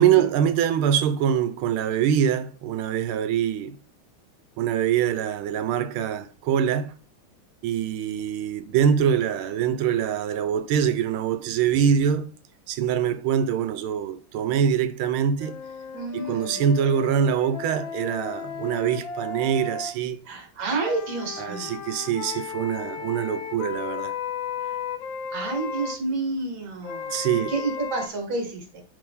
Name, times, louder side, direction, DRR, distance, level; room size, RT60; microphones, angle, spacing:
voice 1, 0.0-3.8 4.6-7.0 7.6-12.3 12.7-15.6 16.1-20.2 21.4-24.1 27.1-27.5, right 8 dB, 90° right, 1.5 m, -24 dB
sound 1, 15.4-19.9 20.6-26.0 26.8-28.1, left 6 dB, 70° left, 1.4 m, -35 dB
voice 2, 15.9-16.7 20.3-21.8 24.6-24.8 25.3-28.8, right 3 dB, 65° right, 2.1 m, -30 dB
8.6 x 3.1 x 3.6 m
omnidirectional pair, 2.3 m